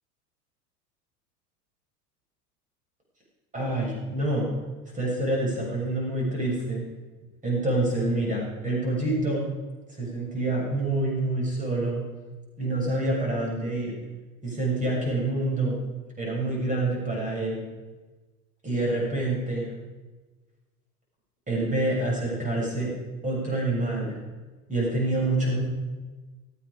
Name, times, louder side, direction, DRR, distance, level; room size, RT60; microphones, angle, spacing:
voice 1, 3.5-4.5 4.9-6.8 7.4-9.5 9.9-12.0 12.6-13.9 14.4-15.8 16.2-17.6 18.6-19.7 21.5-22.9 23.2-24.2 24.7-25.6, right 2 dB, 15° right, -3 dB, 7.0 m, -27 dB
18.0 x 14.0 x 4.9 m, 1.3 s
figure-of-eight pair, 85°, 46 cm